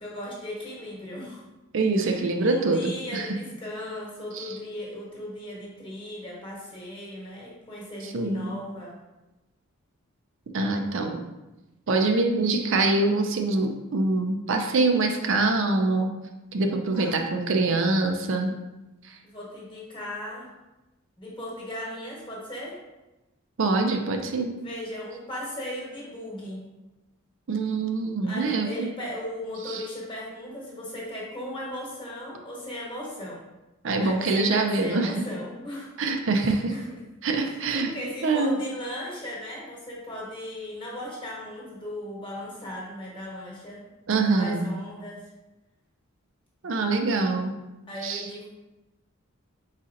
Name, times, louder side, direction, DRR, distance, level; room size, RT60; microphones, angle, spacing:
voice 1, 0.0-1.4 2.0-9.0 16.9-17.2 19.2-20.5 21.2-22.8 24.6-26.7 28.2-33.5 34.0-35.9 36.4-36.8 37.4-43.9 44.1-45.2 47.9-48.5, left 1 dB, 25° left, -4 dB, 1.2 m, -37 dB
voice 2, 1.7-3.3 4.3-4.6 8.0-8.6 10.5-11.2 11.9-16.1 16.5-18.5 19.1-19.2 23.6-24.5 27.5-28.9 29.7-29.8 33.8-35.2 36.0-36.7 37.2-37.9 38.2-38.6 44.1-44.6 46.6-47.5 48.0-48.3, right 3 dB, 65° right, 4 dB, 0.5 m, -24 dB
4.1 x 4.1 x 2.5 m, 1.0 s
head